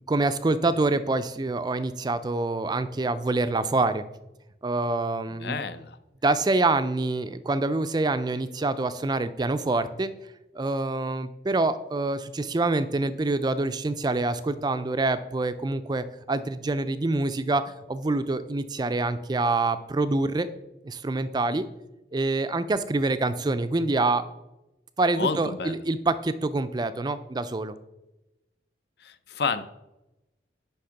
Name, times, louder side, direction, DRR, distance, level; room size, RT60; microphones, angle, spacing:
voice 1, 0.0-4.0 4.6-5.6 6.2-10.1 10.5-17.6 17.9-20.5 20.8-21.7 22.1-24.3 25.0-27.7, right 2 dB, 25° right, 12 dB, 0.4 m, -26 dB
voice 2, 5.3-6.0 25.1-25.8 29.0-29.7, left 4 dB, 60° left, 12 dB, 0.5 m, -30 dB
10.0 x 3.6 x 5.8 m, 0.96 s
head